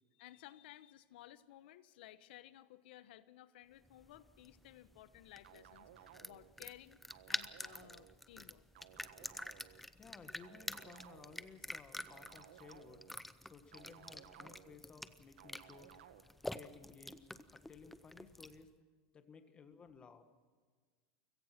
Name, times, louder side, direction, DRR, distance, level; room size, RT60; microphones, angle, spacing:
voice 1, 0.2-7.0 7.3-8.6, left 13 dB, 70° left, 14 dB, 1.1 m, -57 dB
sound 1, 3.8-18.7, left 1 dB, 5° left, 0.6 m, -48 dB
sound 2, 5.4-6.5 7.1-8.1 8.8-9.8 10.4-11.5 12.1-13.1 13.7-14.8 15.4-16.2, right 11 dB, 90° right, 1.6 m, -59 dB
voice 2, 9.9-13.0 13.4-15.9 16.5-18.7 19.1-20.2, left 5 dB, 20° left, 8 dB, 1.6 m, -57 dB
29.5 x 17.0 x 6.0 m, 1.5 s
supercardioid pair, 155°, 6 cm